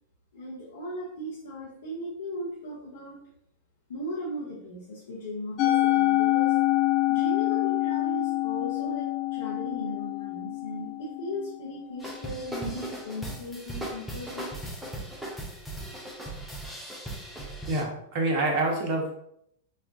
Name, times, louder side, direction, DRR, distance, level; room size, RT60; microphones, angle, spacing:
voice 1, 0.3-3.2 3.9-6.5 7.1-14.5, equal, 70° left, -6 dB, 0.8 m, -37 dB
Musical instrument, 5.6-12.0, left 17 dB, 45° left, 0.4 m, -26 dB
sound 1, 12.0-17.8, right 1 dB, ahead, 0.7 m, -38 dB
voice 2, 17.7-19.2, right 2 dB, 45° right, 0 dB, 1.0 m, -27 dB
4.2 x 2.3 x 2.4 m, 0.72 s
figure-of-eight pair, 95°, 0 cm